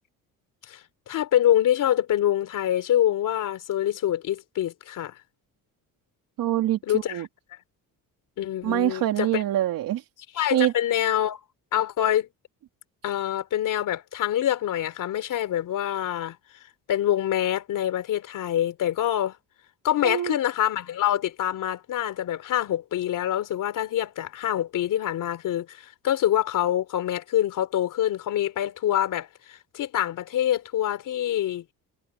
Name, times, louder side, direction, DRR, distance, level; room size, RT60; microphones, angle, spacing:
voice 1, 1.1-5.2 6.9-7.2 8.4-9.4 10.3-11.4 11.7-12.3 13.0-16.4 16.9-19.4 19.8-31.6, left 11 dB, 60° left, 3.4 m, -25 dB
voice 2, 6.4-7.3 8.6-10.0 10.5-10.7 20.0-20.4, right 13 dB, 70° right, 3.2 m, -25 dB
cardioid pair, 175°, 35 cm